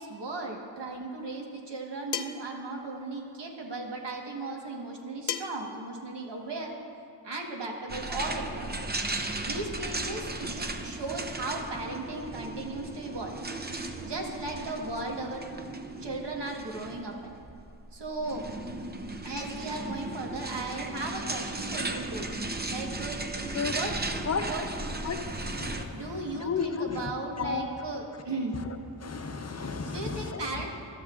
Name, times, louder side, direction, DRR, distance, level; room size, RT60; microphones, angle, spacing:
voice 1, 0.0-6.7 7.2-8.7 9.4-13.4 14.0-15.4 16.0-17.3 17.9-18.4 19.2-22.3 22.7-23.2 23.7-24.0 24.4-24.7 25.9-28.6 29.9-30.7, right 2 dB, 75° right, 0 dB, 1.4 m, -36 dB
sound 1, 2.1-2.5 5.3-5.7, left 9 dB, 70° left, 0.5 m, -33 dB
sound 2, 7.9-25.9, right 2 dB, 25° right, 0.6 m, -36 dB
voice 2, 25.0-26.0 26.4-27.0 27.4-27.6 29.0-30.5, left 5 dB, 40° left, 6 dB, 0.7 m, -33 dB
14.5 x 12.0 x 2.5 m, 2.4 s
wide cardioid pair, 70°, 42 cm